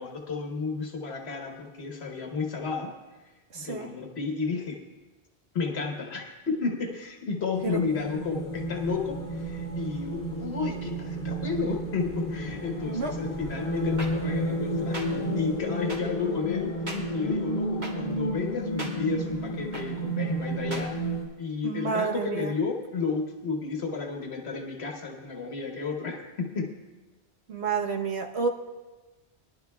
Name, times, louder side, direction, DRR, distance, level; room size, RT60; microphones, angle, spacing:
voice 1, 0.0-4.8 5.5-21.0 21.4-26.9, left 5 dB, 80° left, 3 dB, 1.3 m, -32 dB
voice 2, 3.5-3.9 7.6-7.8 12.9-13.1 21.6-22.5 27.5-28.5, right 5 dB, 85° right, 2 dB, 1.3 m, -29 dB
sound 1, 7.5-21.2, right 1 dB, 45° left, 2.6 m, -31 dB
sound 2, 8.5-14.4, left 2 dB, 5° left, 0.5 m, -48 dB
sound 3, 14.0-14.1 14.9-15.1 15.9-16.0 16.9-17.0 17.8-17.9 18.8-18.9 19.7-19.9 20.7-20.9, right 1 dB, 45° right, 1.8 m, -36 dB
21.5 x 11.5 x 2.3 m, 1.2 s
omnidirectional pair, 1.1 m